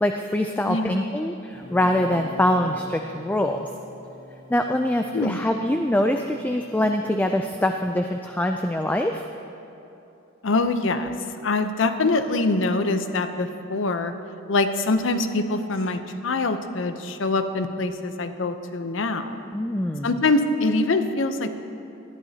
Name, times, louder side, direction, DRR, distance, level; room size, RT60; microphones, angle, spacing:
voice 1, 0.0-3.7 4.5-9.2 19.5-20.2, left 1 dB, 10° left, 4 dB, 0.3 m, -24 dB
voice 2, 0.7-1.0 5.1-5.4 10.4-11.1 11.4-14.1 14.5-19.4 20.0-21.6, left 3 dB, 70° left, 9 dB, 0.7 m, -24 dB
Guitar, 1.5-7.9, equal, 40° left, 1.2 m, -44 dB
19.0 x 12.0 x 2.8 m, 2.8 s
head